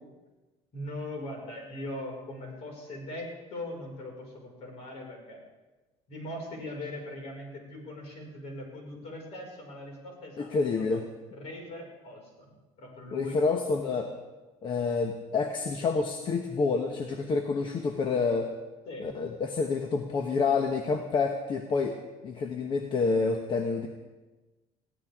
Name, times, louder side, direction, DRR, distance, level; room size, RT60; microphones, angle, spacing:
voice 1, 0.7-5.4 6.1-10.5 10.8-11.0 11.3-12.5 12.8-13.5 18.9-19.2, left 1 dB, 60° left, 0 dB, 5.4 m, -40 dB
voice 2, 10.4-11.0 13.1-14.1 14.6-18.5 19.0-21.9 22.2-23.9, left 4 dB, 40° left, 5 dB, 1.1 m, -28 dB
22.0 x 15.5 x 3.6 m, 1.2 s
cardioid pair, 140°, 12 cm